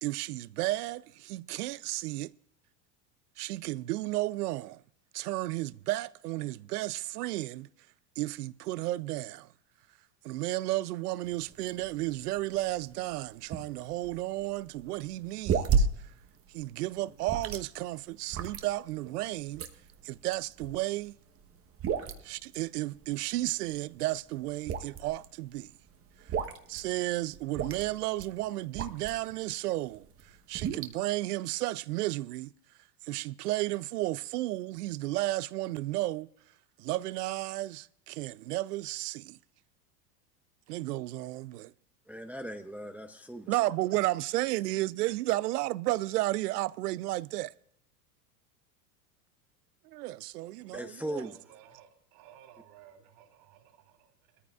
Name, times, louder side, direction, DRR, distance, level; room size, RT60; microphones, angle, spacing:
voice 1, 0.0-2.3 3.4-4.8 5.1-7.7 8.2-9.5 10.2-16.1 16.5-19.6 20.0-21.2 22.2-25.7 26.7-32.5 33.0-36.3 36.8-39.4 40.7-41.7 43.5-47.5 49.8-51.3, right 17 dB, 80° right, 0.6 m, -33 dB
sound 1, 11.2-29.4 29.8-30.9, right 5 dB, 30° right, 1.1 m, -34 dB
voice 2, 42.1-43.6 50.7-51.3, equal, 5° right, 0.6 m, -39 dB
voice 3, 51.2-54.4, right 10 dB, 55° right, 3.5 m, -57 dB
20.5 x 14.0 x 2.4 m
hypercardioid pair, 100°, 46 cm